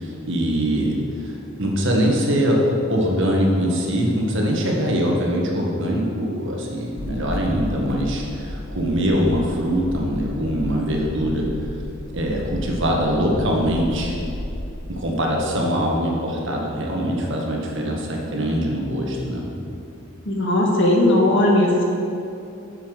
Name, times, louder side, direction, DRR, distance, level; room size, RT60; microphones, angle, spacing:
voice 1, 0.0-11.5 12.1-14.1 14.9-19.5, equal, 60° right, -1 dB, 1.6 m, -22 dB
sound 1, 7.0-14.7, left 1 dB, 45° left, 0.7 m, -33 dB
voice 2, 20.3-21.8, left 1 dB, 60° left, -1 dB, 1.7 m, -17 dB
8.5 x 6.9 x 6.4 m, 2.7 s
head